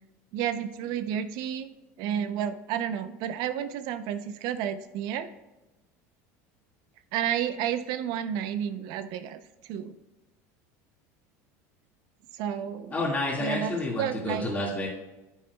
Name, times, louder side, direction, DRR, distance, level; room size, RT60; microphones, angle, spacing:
voice 1, 0.3-1.7 2.0-5.3 7.1-9.9 12.3-13.1 13.4-14.5, right 9 dB, 65° right, 11 dB, 0.6 m, -31 dB
voice 2, 12.9-14.9, left 2 dB, 20° left, -4 dB, 1.9 m, -29 dB
9.2 x 8.4 x 2.3 m, 1.0 s
supercardioid pair, 110°, 8 cm